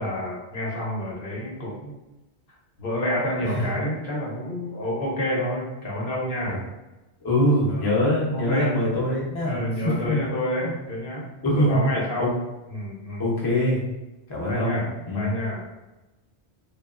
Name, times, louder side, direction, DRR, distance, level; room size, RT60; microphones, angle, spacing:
voice 1, 0.0-2.0 2.8-6.6 7.7-7.9 8.3-8.8 9.4-11.2 11.6-12.3 12.7-13.3 14.4-15.7, left 1 dB, 60° left, -4 dB, 0.9 m, -29 dB
voice 2, 7.2-9.7 10.0-10.2 10.6-10.7 11.4-11.8 12.2-12.3 13.2-13.8 14.3-14.8 15.1-15.3, left 1 dB, 25° left, -5 dB, 0.5 m, -23 dB
2.8 x 2.2 x 2.4 m, 1.0 s
omnidirectional pair, 1.1 m